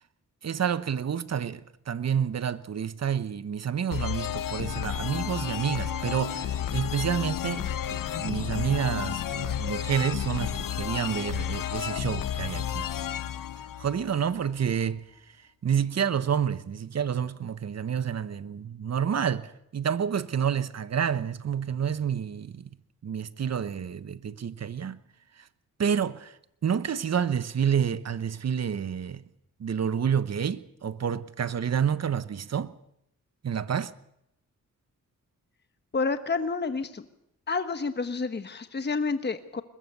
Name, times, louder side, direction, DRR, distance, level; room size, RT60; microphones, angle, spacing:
voice 1, 0.4-12.9 13.8-22.7 23.0-25.0 25.4-25.5 25.8-29.2 29.6-32.7 33.4-33.9, right 8 dB, 50° right, 1.0 m, -29 dB
sound 1, 3.9-14.5, left 9 dB, 85° left, 1.0 m, -32 dB
voice 2, 35.9-37.1 37.5-39.6, left 4 dB, 30° left, 1.2 m, -29 dB
22.0 x 20.5 x 6.8 m
cardioid pair, 80°, 32 cm